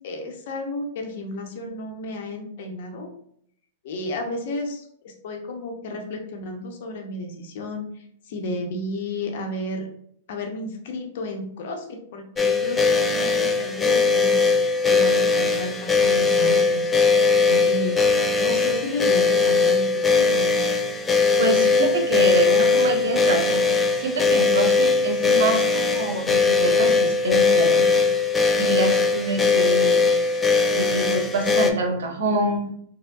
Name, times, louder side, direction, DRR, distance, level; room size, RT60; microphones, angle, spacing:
voice 1, 0.0-3.1 3.8-9.9 10.3-14.4 14.9-16.8 17.4-18.1 18.4-20.5, left 1 dB, 60° left, 3 dB, 0.7 m, -32 dB
sound 1, 12.4-31.7, left 4 dB, 15° left, 0.4 m, -20 dB
voice 2, 21.4-27.9 28.6-30.1 30.8-32.7, right 2 dB, 70° right, 3 dB, 0.7 m, -26 dB
4.3 x 2.1 x 2.3 m, 0.66 s
hypercardioid pair, 110°, 0 cm